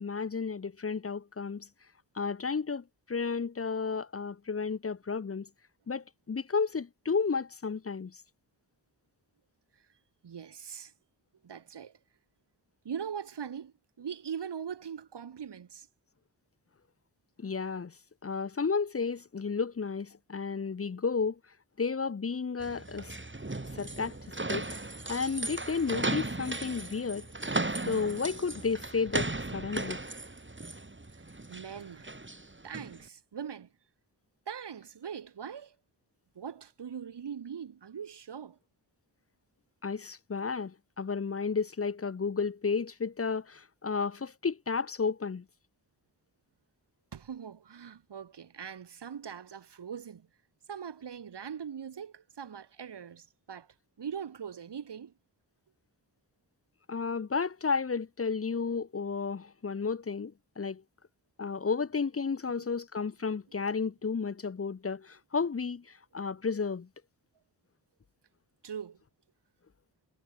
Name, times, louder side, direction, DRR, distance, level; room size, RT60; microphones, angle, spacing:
voice 1, 0.0-1.7 2.2-5.5 5.9-8.2 17.4-17.9 18.2-21.4 21.8-23.1 23.7-24.2 24.5-24.8 25.1-27.3 27.9-30.0 39.8-45.4 56.9-60.8 61.4-66.9, left 5 dB, 35° left, 0.8 m, -32 dB
voice 2, 10.2-10.9 11.4-11.9 12.8-15.9 31.1-31.2 31.5-32.1 32.6-33.7 34.5-35.8 36.4-38.6 47.1-50.3 50.7-53.7 54.0-55.1 68.6-69.0, right 7 dB, 85° right, 1.9 m, -41 dB
sound 1, 22.6-33.0, right 2 dB, 30° right, 7.2 m, -36 dB
cardioid pair, 55°, 40 cm